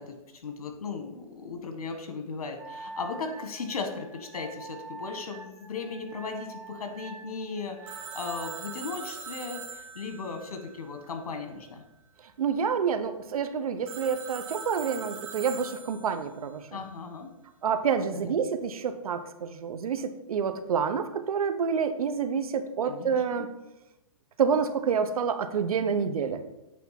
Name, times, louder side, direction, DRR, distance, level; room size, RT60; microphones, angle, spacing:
voice 1, 0.0-11.8 16.7-17.3 18.1-18.3 22.8-23.5, left 4 dB, 85° left, 5 dB, 1.6 m, -37 dB
Wind instrument woodwind instrument, 2.6-8.9, right 3 dB, 10° right, 1.0 m, -45 dB
Telephone, 7.9-11.5 13.9-16.4, right 6 dB, 60° right, 1.3 m, -42 dB
voice 2, 12.4-16.6 17.6-23.5 24.4-26.4, right 6 dB, 80° right, 10 dB, 0.9 m, -28 dB
8.5 x 3.5 x 5.8 m, 0.95 s
hypercardioid pair, 155°, 18 cm